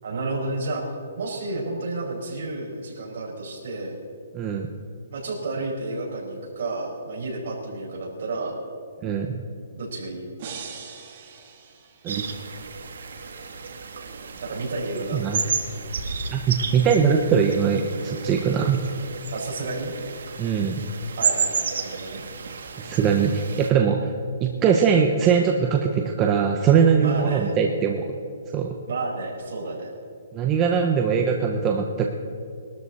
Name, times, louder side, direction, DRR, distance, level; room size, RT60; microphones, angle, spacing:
voice 1, 0.0-0.8 1.2-3.9 5.1-8.5 9.8-10.3 14.4-15.4 19.3-19.9 21.2-22.2 27.0-27.6 28.9-29.9, right 2 dB, 55° right, -2 dB, 4.5 m, -31 dB
voice 2, 4.3-4.7 9.0-9.4 12.0-12.2 15.1-15.4 16.3-18.8 20.4-20.8 22.8-24.1 24.4-28.1 28.5-28.7 30.3-32.1, right 6 dB, 15° right, 2 dB, 0.6 m, -21 dB
sound 1, 10.4-12.5, right 6 dB, 35° right, 1.7 m, -41 dB
sound 2, 12.1-23.7, right 5 dB, 70° right, 1.6 m, -32 dB
21.0 x 13.0 x 4.1 m, 2.4 s
hypercardioid pair, 170°, 0 cm